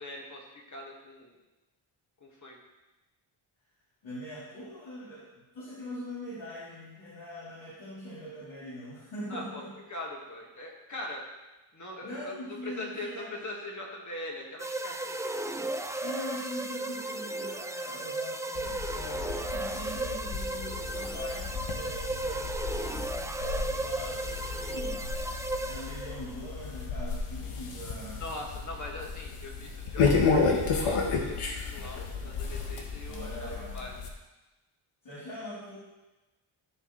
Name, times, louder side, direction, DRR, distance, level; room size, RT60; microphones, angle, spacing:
voice 1, 0.0-1.3 2.2-2.6 9.3-9.6 9.9-11.2 11.7-12.3 12.6-16.1 28.2-34.0, left 1 dB, 35° left, -1 dB, 2.0 m, -41 dB
voice 2, 4.0-9.7 12.0-13.3 16.0-25.0 25.6-28.3 33.0-33.9 35.0-35.8, equal, 65° left, -11 dB, 3.4 m, -42 dB
sound 1, 14.6-26.4, right 2 dB, 5° right, 0.4 m, -35 dB
sound 2, 18.6-34.1, left 4 dB, 85° left, 1.4 m, -32 dB
14.0 x 6.9 x 3.3 m, 1.1 s
wide cardioid pair, 125°, 49 cm